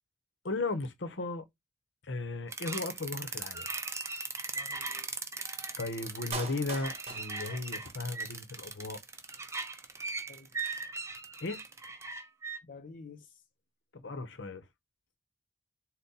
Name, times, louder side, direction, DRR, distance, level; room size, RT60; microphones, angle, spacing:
voice 1, 0.4-1.4 2.0-3.7 5.8-9.0 11.4-11.6 13.9-14.6, left 3 dB, 70° left, 0.8 m, -36 dB
sound 1, 2.5-12.6, right 4 dB, 15° right, 0.5 m, -39 dB
voice 2, 4.5-5.2 10.3-10.8 12.6-13.4, left 4 dB, 45° left, 0.5 m, -51 dB
Clapping, 6.3-8.3 8.6-8.7, right 3 dB, 35° right, 0.9 m, -42 dB
3.9 x 2.1 x 4.0 m
head